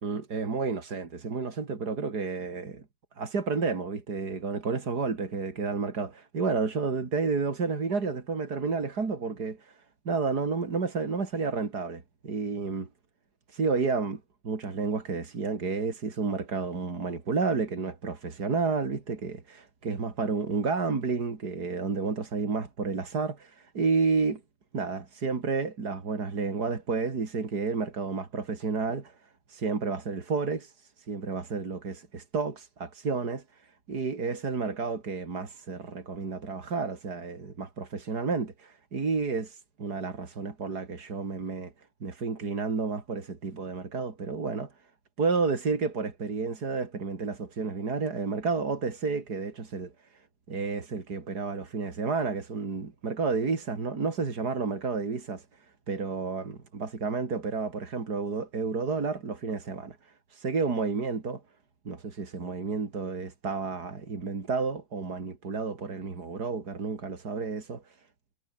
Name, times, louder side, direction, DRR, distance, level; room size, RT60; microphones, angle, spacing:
voice 1, 0.0-2.8 3.2-12.9 13.5-24.4 24.7-29.2 29.5-41.7 42.0-44.7 45.2-49.9 50.5-55.5 55.9-61.4 61.9-68.0, right 4 dB, 80° right, 3.4 m, -31 dB
omnidirectional pair, 1.7 m